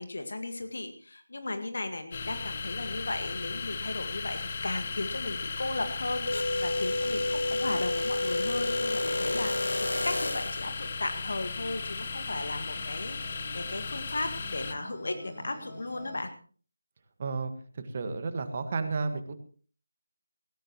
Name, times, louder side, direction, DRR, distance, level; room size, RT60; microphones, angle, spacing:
voice 1, 0.0-16.3, left 2 dB, 55° left, 7 dB, 1.8 m, -36 dB
sound 1, 2.1-14.7, left 4 dB, 30° left, 1.1 m, -36 dB
sound 2, 6.3-10.7, left 1 dB, 75° left, 1.0 m, -30 dB
sound 3, 7.0-16.2, equal, 10° left, 6.3 m, -51 dB
voice 2, 17.2-19.3, right 4 dB, 30° right, 9 dB, 1.6 m, -32 dB
17.5 x 17.0 x 3.1 m, 0.41 s
figure-of-eight pair, 160°, 0 cm